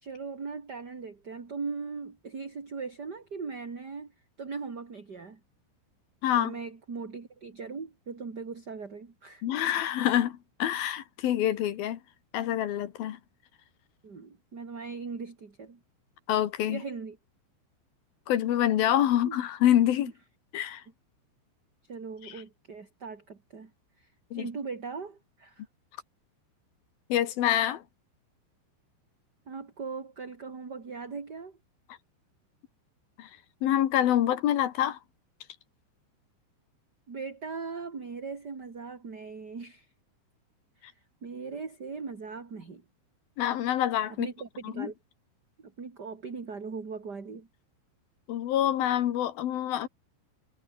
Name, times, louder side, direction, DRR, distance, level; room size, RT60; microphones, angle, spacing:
voice 1, 0.0-4.1 4.4-5.4 6.3-9.4 14.0-15.8 16.7-17.2 19.2-19.4 21.9-23.7 24.0-25.6 29.5-31.6 37.1-39.9 40.8-40.9 41.2-42.8 44.2-44.9 45.6-47.5, right 4 dB, 25° right, 2.7 m, -39 dB
voice 2, 6.2-6.5 9.4-12.0 12.3-13.2 16.3-16.8 18.3-20.1 20.5-20.8 22.2-22.3 24.3-24.5 27.1-27.8 33.2-33.3 33.6-35.0 43.4-44.3 44.6-44.9 48.3-49.9, left 11 dB, 60° left, 2.8 m, -26 dB
omnidirectional pair, 5.6 m